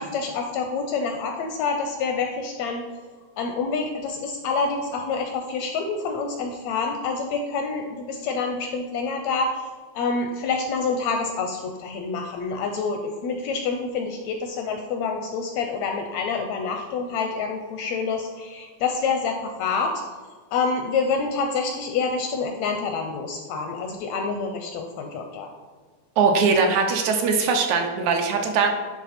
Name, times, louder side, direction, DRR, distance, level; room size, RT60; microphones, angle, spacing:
voice 1, 0.0-2.8 3.4-9.6 9.9-19.9 20.5-25.5, left 4 dB, 80° left, 4 dB, 1.6 m, -27 dB
voice 2, 26.2-28.7, right 4 dB, 80° right, 4 dB, 1.9 m, -21 dB
10.0 x 3.5 x 4.2 m, 1.5 s
omnidirectional pair, 3.5 m